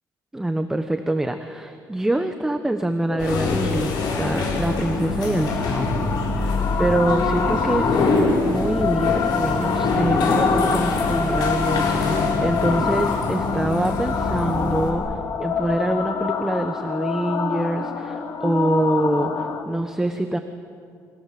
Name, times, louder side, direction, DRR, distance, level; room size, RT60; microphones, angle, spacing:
voice 1, 0.3-8.1 8.4-15.0 15.4-20.4, right 1 dB, 5° right, 7 dB, 1.1 m, -25 dB
sound 1, 3.1-19.6, left 6 dB, 45° left, 2.4 m, -26 dB
sound 2, 3.2-14.9, left 3 dB, 70° left, 6.8 m, -24 dB
30.0 x 25.5 x 7.7 m, 2.3 s
cardioid pair, 145°, 7 cm